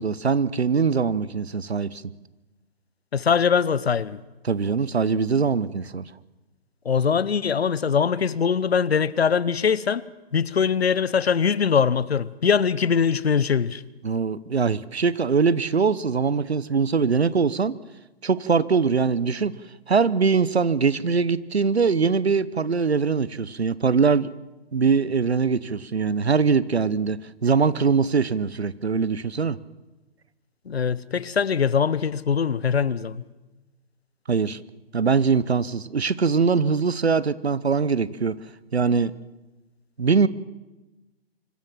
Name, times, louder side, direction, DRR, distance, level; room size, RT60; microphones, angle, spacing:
voice 1, 0.0-2.0 4.4-6.0 14.0-17.8 18.2-19.5 19.9-24.3 24.7-29.6 34.3-34.6 34.9-38.4 38.7-39.1 40.0-40.3, right 5 dB, 90° right, 1.0 m, -22 dB
voice 2, 3.1-4.2 6.8-10.0 10.3-13.8 30.7-33.2, left 6 dB, 80° left, 1.0 m, -22 dB
25.0 x 15.0 x 7.5 m
figure-of-eight pair, 140°, 31 cm